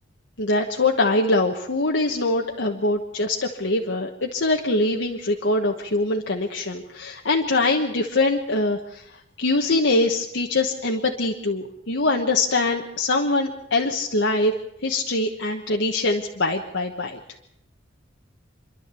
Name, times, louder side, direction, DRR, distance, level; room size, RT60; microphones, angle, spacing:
voice 1, 0.4-14.5 14.8-17.2, left 2 dB, 70° left, 1 dB, 1.3 m, -23 dB
27.5 x 11.5 x 8.3 m, 0.79 s
head